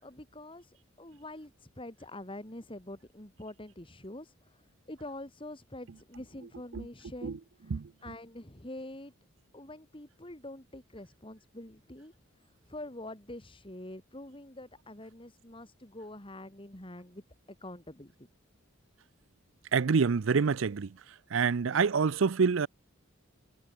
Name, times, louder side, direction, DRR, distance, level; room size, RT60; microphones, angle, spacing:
voice 1, 0.0-4.6 4.9-7.4 7.7-9.1 9.5-12.1 12.7-18.1, left 1 dB, 25° left, 3.1 m, -45 dB
voice 2, 19.7-21.0 21.3-22.7, right 5 dB, 70° right, 0.5 m, -27 dB
head